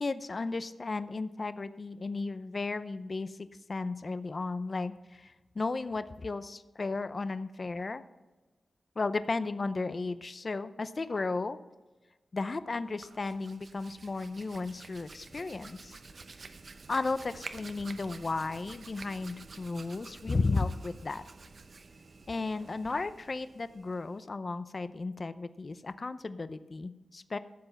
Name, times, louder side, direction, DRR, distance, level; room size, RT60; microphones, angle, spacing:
voice 1, 0.0-8.0 9.0-11.6 12.3-16.0 16.9-21.2 22.3-27.4, left 3 dB, 40° left, 13 dB, 0.5 m, -34 dB
Hands, 12.8-24.2, right 3 dB, 50° right, 0.8 m, -50 dB
12.5 x 7.8 x 5.8 m, 1.2 s
wide cardioid pair, 105°, 0 cm